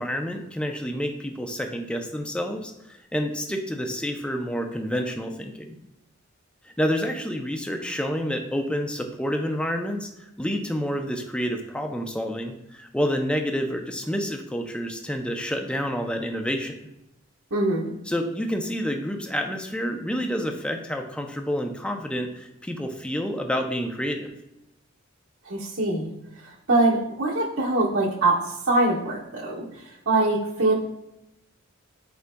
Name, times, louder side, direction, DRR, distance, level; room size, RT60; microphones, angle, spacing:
voice 1, 0.0-5.8 6.6-16.7 18.1-24.3, equal, 5° left, 3 dB, 0.5 m, -29 dB
voice 2, 17.5-17.9 25.4-30.7, right 2 dB, 80° right, -3 dB, 1.3 m, -24 dB
9.4 x 4.8 x 2.3 m, 0.89 s
head